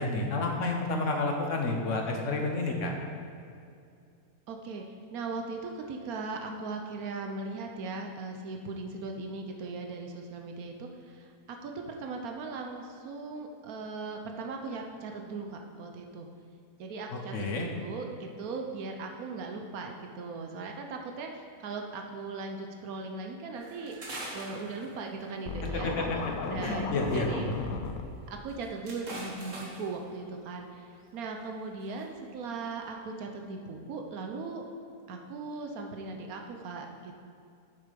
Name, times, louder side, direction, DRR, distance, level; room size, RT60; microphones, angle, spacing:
voice 1, 0.0-2.9 17.1-17.7 25.7-27.3, left 2 dB, 60° left, 2 dB, 1.3 m, -30 dB
voice 2, 4.5-4.8 5.1-16.3 16.8-24.0 24.3-25.9 26.5-27.5 28.3-34.6 35.1-37.2, right 3 dB, 90° right, 3 dB, 1.3 m, -38 dB
sound 1, 23.5-25.3 26.7-27.2 27.5-27.6 27.9-28.0 28.4-30.0 30.9-31.2 31.7-32.0 32.4-32.7, right 1 dB, 60° right, 2.0 m, -43 dB
Scratching (performance technique), 25.5-28.0, left 5 dB, 85° left, 1.2 m, -35 dB
8.4 x 6.8 x 5.2 m, 2.5 s
omnidirectional pair, 1.5 m